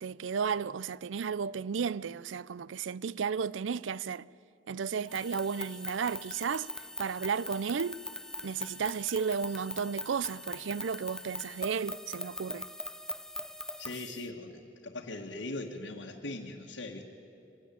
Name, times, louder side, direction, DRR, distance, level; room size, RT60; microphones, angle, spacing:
voice 1, 0.0-4.3 4.7-6.7 7.0-8.0 8.4-12.7, right 6 dB, 90° right, 0.5 m, -33 dB
sound 1, 5.1-14.2, left 1 dB, 5° left, 0.6 m, -41 dB
voice 2, 13.8-17.0, left 2 dB, 75° left, 1.8 m, -40 dB
24.0 x 17.5 x 10.0 m
head